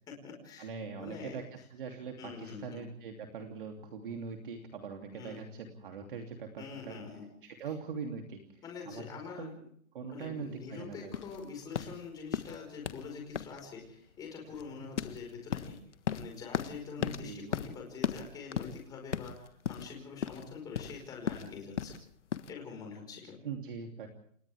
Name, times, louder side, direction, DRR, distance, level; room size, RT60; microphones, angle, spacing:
voice 1, 0.1-0.7 1.0-1.4 2.2-2.8 5.1-5.4 6.6-7.3 8.6-9.5 10.1-15.8 16.1-21.9 22.5-23.4, left 5 dB, 10° left, 1 dB, 5.0 m, -45 dB
voice 2, 0.6-1.5 1.7-7.0 7.4-9.1 9.4-9.6 9.9-11.1 17.0-17.5 23.4-24.1, right 5 dB, 40° right, 3 dB, 3.1 m, -42 dB
sound 1, 11.1-22.5, left 8 dB, 55° left, 1.6 m, -38 dB
30.0 x 28.0 x 3.6 m, 0.62 s
hypercardioid pair, 180°, 42 cm